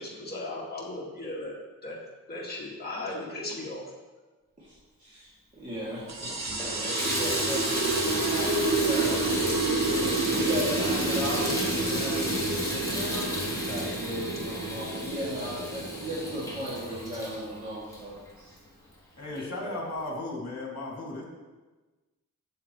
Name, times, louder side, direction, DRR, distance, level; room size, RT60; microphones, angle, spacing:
voice 1, 0.0-2.0 2.3-3.9 19.3-19.5, left 2 dB, 30° left, -5 dB, 2.0 m, -37 dB
voice 2, 4.6-6.3 6.6-9.2 10.3-18.5 19.6-19.8, equal, 25° right, -11 dB, 2.6 m, -37 dB
Water tap faucet / Bathtub (filling or washing), 5.7-5.8 6.3-18.7 19.4-19.5 20.0-20.1, left 1 dB, 10° left, 1.8 m, -34 dB
sound 1, 6.1-17.1, right 3 dB, 50° right, 1.3 m, -29 dB
voice 3, 19.2-21.2, left 2 dB, 50° left, -2 dB, 2.6 m, -35 dB
13.0 x 7.7 x 3.2 m, 1.2 s
wide cardioid pair, 135°, 34 cm